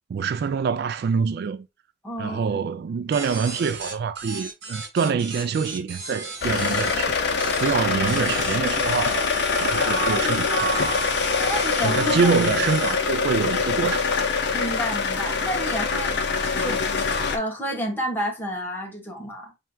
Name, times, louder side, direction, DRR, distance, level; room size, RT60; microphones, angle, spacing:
voice 1, 0.1-1.7 2.2-7.2 7.6-11.0 11.8-14.1, right 6 dB, 60° right, 0.3 m, -25 dB
voice 2, 2.0-2.6 11.5-12.3 14.5-19.6, equal, 10° left, 1.3 m, -30 dB
sound 1, 3.1-6.9 7.4-7.7 8.1-12.9, right 3 dB, 75° right, 1.9 m, -36 dB
sound 2, 6.4-17.4, left 5 dB, 65° left, 0.7 m, -24 dB
sound 3, 9.7-12.6, right 1 dB, 35° right, 2.3 m, -30 dB
4.4 x 3.5 x 2.2 m
head